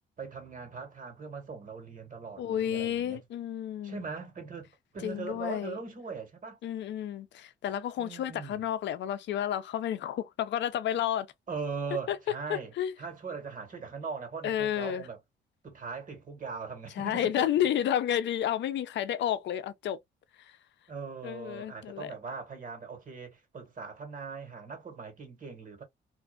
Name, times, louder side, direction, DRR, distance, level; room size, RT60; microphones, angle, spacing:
voice 1, 0.2-3.2 3.8-4.7 4.9-6.6 8.0-8.7 11.5-15.2 15.6-17.7 20.9-25.8, right 5 dB, 40° right, 1.4 m, -40 dB
voice 2, 2.4-4.0 5.0-5.8 6.6-11.3 12.1-12.2 12.5-12.9 14.4-15.1 17.0-20.0 21.2-22.1, left 10 dB, 65° left, 0.5 m, -31 dB
2.5 x 2.4 x 2.2 m
cardioid pair, 90°, 20 cm